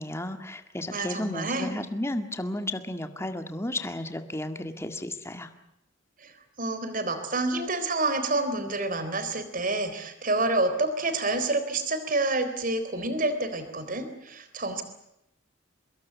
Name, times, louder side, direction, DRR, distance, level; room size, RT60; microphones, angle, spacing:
voice 1, 0.0-5.5, left 1 dB, 15° left, 8 dB, 2.0 m, -33 dB
voice 2, 0.9-1.7 6.2-6.3 6.6-14.8, right 2 dB, 45° right, 10 dB, 3.8 m, -28 dB
24.5 x 22.0 x 8.3 m, 0.82 s
head